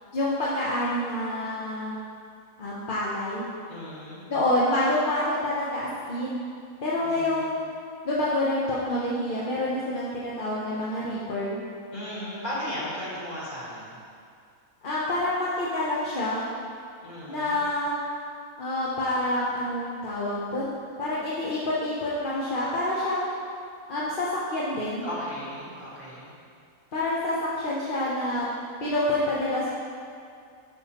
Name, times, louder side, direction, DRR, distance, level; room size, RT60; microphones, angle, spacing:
voice 1, 0.1-2.0 2.6-3.4 4.3-6.4 6.8-7.7 8.0-11.6 14.8-16.4 17.3-18.0 18.6-20.7 21.0-23.3 23.9-25.1 26.9-28.5 28.8-29.7, left 1 dB, 45° left, -7 dB, 0.8 m, -27 dB
voice 2, 3.7-4.2 7.0-7.4 11.9-14.0 17.0-17.6 25.0-26.3, equal, 30° left, -8 dB, 1.7 m, -36 dB
9.1 x 5.4 x 2.9 m, 2.3 s
omnidirectional pair, 1.6 m